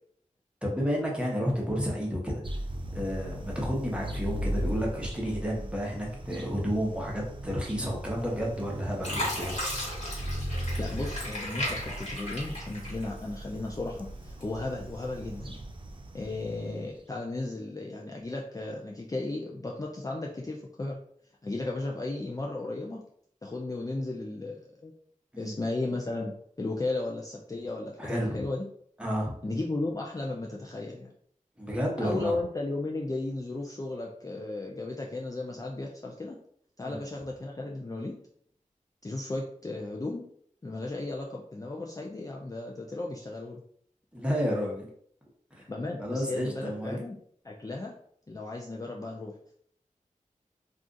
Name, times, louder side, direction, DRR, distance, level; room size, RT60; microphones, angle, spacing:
voice 1, 0.6-2.4 2.9-9.5 25.3-25.6 28.0-28.4 29.0-29.4 31.6-32.3 36.8-36.9 44.1-44.9 45.5-45.7 46.0-47.0, equal, 10° right, -3 dB, 0.9 m, -31 dB
sound 1, 2.4-17.0, right 1 dB, 40° right, 0.4 m, -38 dB
Fill (with liquid), 8.3-8.6 9.0-13.4 13.9-14.7 15.2-15.4, left 1 dB, 55° left, 1.4 m, -35 dB
voice 2, 10.8-15.7 16.1-21.0 21.4-23.0 23.4-24.9 25.4-26.3 26.6-28.6 29.4-31.1 32.0-36.4 36.8-38.1 39.0-40.2 40.6-43.6 45.7-47.2 47.4-47.9 48.3-49.5, left 2 dB, 25° left, -1 dB, 0.4 m, -35 dB
2.4 x 2.4 x 3.8 m, 0.63 s
wide cardioid pair, 70°, 14 cm